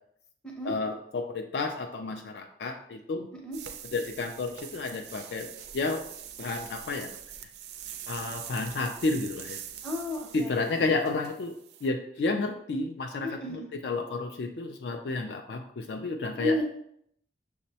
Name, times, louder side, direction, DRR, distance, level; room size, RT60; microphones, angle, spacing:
voice 1, 0.6-3.3 3.9-5.5 5.7-6.1 6.4-7.1 8.1-9.6 10.3-11.5 11.8-16.6, left 3 dB, 60° left, 5 dB, 0.3 m, -31 dB
sound 1, 3.5-11.9, right 9 dB, 60° right, 0.3 m, -43 dB
voice 2, 9.8-10.8 13.2-13.7 16.4-16.6, left 1 dB, 5° left, -2 dB, 0.6 m, -33 dB
6.0 x 2.1 x 2.7 m, 0.70 s
head